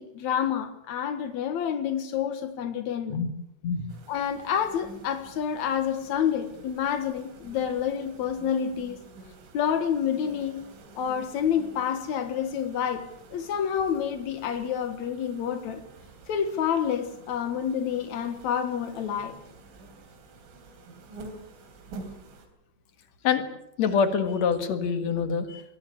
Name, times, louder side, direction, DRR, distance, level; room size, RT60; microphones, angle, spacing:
voice 1, 0.0-3.2 4.1-9.0 9.5-10.6 10.9-15.8 16.3-19.4, left 8 dB, 85° left, 9 dB, 1.6 m, -28 dB
sound 1, 3.9-22.5, right 3 dB, 80° right, 6.1 m, -49 dB
voice 2, 23.8-25.6, left 6 dB, 55° left, 8 dB, 2.1 m, -25 dB
23.5 x 18.0 x 8.5 m, 0.76 s
omnidirectional pair, 5.6 m